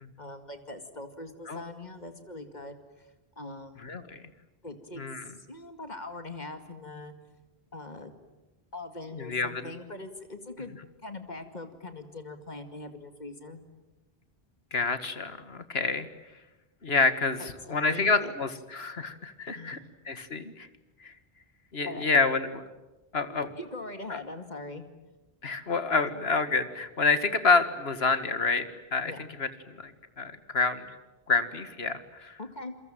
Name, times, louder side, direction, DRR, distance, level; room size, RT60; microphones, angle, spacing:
voice 1, 0.2-2.8 3.4-3.8 4.6-5.0 5.4-7.1 7.7-8.1 8.7-13.6 17.4-18.3 19.5-19.9 21.9-22.0 23.6-25.1 29.0-29.3 32.4-32.7, left 2 dB, 45° left, 8 dB, 2.4 m, -41 dB
voice 2, 3.8-4.2 5.0-5.2 9.2-9.7 14.7-16.1 16.8-19.8 20.1-20.7 21.0-21.1 21.7-22.6 23.1-23.5 24.1-24.2 25.4-28.7 28.9-29.1 29.4-29.5 29.8-29.9 30.2-30.9 31.3-32.4, left 4 dB, 75° left, 11 dB, 2.0 m, -28 dB
28.5 x 22.5 x 9.0 m, 1.1 s
omnidirectional pair, 1.1 m